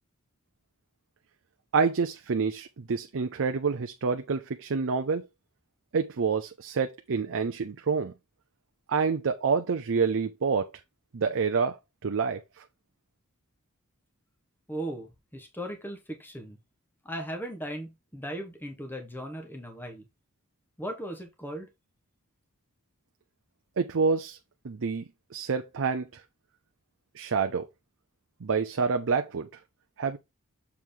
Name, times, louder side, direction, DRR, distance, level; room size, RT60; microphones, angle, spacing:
voice 1, 1.7-5.2 5.9-8.1 8.9-10.7 11.1-11.8 12.0-12.4 23.8-24.4 24.6-25.0 25.3-26.2 27.2-27.7 28.4-29.5 30.0-30.2, right 5 dB, 60° right, 0.6 m, -27 dB
voice 2, 14.7-16.6 17.0-20.0 20.8-21.7, right 1 dB, 10° left, 1.2 m, -37 dB
7.0 x 4.6 x 3.8 m
head